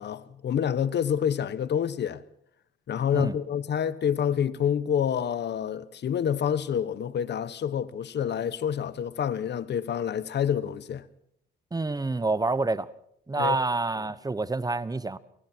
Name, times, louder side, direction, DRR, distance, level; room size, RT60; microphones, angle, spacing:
voice 1, 0.0-2.2 2.9-11.0 13.4-13.6, left 8 dB, 60° left, 1.4 m, -28 dB
voice 2, 11.7-12.9 13.3-15.2, right 3 dB, 20° right, 1.1 m, -27 dB
29.5 x 28.5 x 4.6 m
cardioid pair, 90°, 20 cm